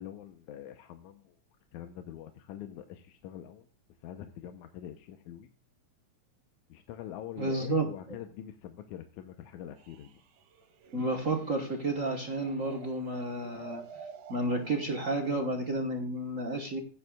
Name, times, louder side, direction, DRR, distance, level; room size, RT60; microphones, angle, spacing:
voice 1, 0.0-1.4 1.7-3.7 4.0-5.5 6.7-10.2, left 11 dB, 85° left, 7 dB, 2.2 m, -44 dB
voice 2, 7.4-7.9 10.9-13.8 14.3-16.8, right 2 dB, 60° right, 2 dB, 0.8 m, -31 dB
sound 1, 9.8-15.5, right 6 dB, 85° right, 2.7 m, -51 dB
16.0 x 9.7 x 2.3 m, 0.41 s
omnidirectional pair, 3.4 m